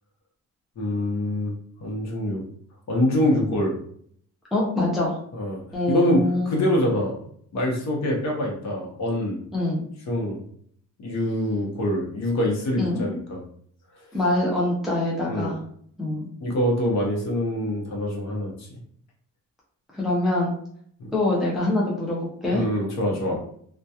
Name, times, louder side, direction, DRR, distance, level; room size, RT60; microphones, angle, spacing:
voice 1, 0.8-1.5 1.8-2.4 2.9-3.8 5.3-5.6 5.9-7.2 7.5-9.4 10.1-10.4 11.0-13.4 15.3-15.5 16.4-18.8 21.0-21.1 22.5-23.3, left 1 dB, 50° left, -1 dB, 0.8 m, -25 dB
voice 2, 4.5-5.2 5.7-6.6 9.5-9.8 12.8-13.2 14.1-15.6 16.0-16.3 19.9-20.5 21.1-22.6, left 2 dB, ahead, -5 dB, 0.4 m, -24 dB
2.8 x 2.2 x 2.3 m, 0.62 s
cardioid pair, 170°, 34 cm